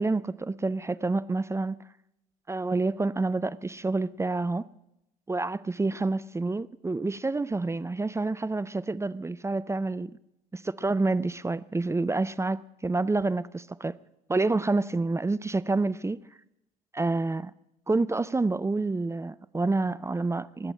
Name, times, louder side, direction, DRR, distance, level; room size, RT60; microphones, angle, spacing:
voice 1, 0.0-1.8 2.5-4.7 5.3-10.1 10.5-13.9 14.3-16.2 16.9-17.5 17.9-20.7, right 3 dB, 15° right, 0.5 m, -28 dB
19.0 x 7.9 x 8.7 m
figure-of-eight pair, 50°, 19 cm